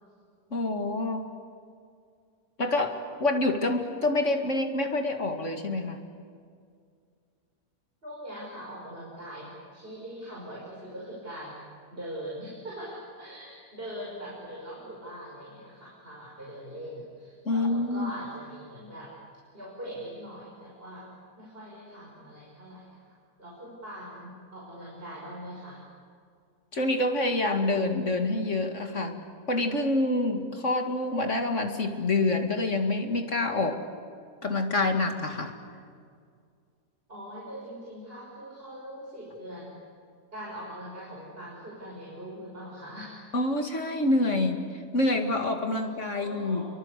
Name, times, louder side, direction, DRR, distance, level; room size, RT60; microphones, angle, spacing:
voice 1, 0.5-1.4 2.6-6.0 17.4-18.1 26.7-29.2 29.5-33.8 34.4-35.6 43.3-46.7, left 2 dB, 50° left, 5 dB, 2.5 m, -27 dB
voice 2, 8.0-19.1 19.5-23.0 23.4-25.8 37.1-39.8 40.3-43.2 46.1-46.7, equal, 35° right, -4 dB, 6.0 m, -42 dB
30.0 x 23.5 x 8.2 m, 2.2 s
omnidirectional pair, 1.7 m